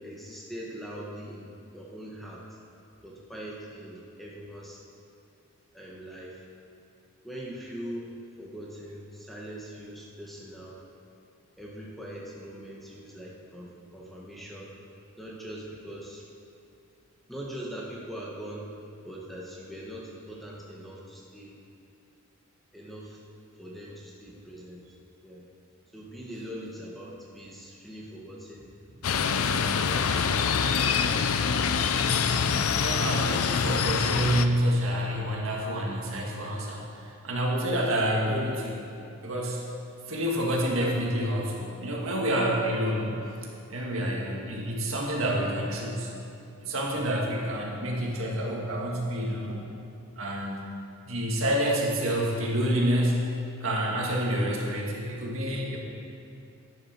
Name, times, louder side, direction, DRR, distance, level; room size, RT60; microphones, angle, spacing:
voice 1, 0.0-2.4 3.0-4.8 5.7-6.5 7.2-8.1 8.4-10.8 11.6-14.7 15.2-16.2 17.3-18.8 19.0-21.5 22.7-23.2 23.6-24.8 25.2-25.4 25.9-28.7 29.1-30.2, equal, ahead, -5 dB, 1.4 m, -42 dB
sound 1, 29.0-34.5, left 6 dB, 80° left, 0.6 m, -25 dB
voice 2, 32.8-38.8 39.2-39.6 40.1-43.1 43.7-46.1 46.6-49.6 50.2-50.6 51.1-53.2 53.6-55.8, equal, 65° right, -2 dB, 1.9 m, -28 dB
11.5 x 10.5 x 4.5 m, 2.7 s
head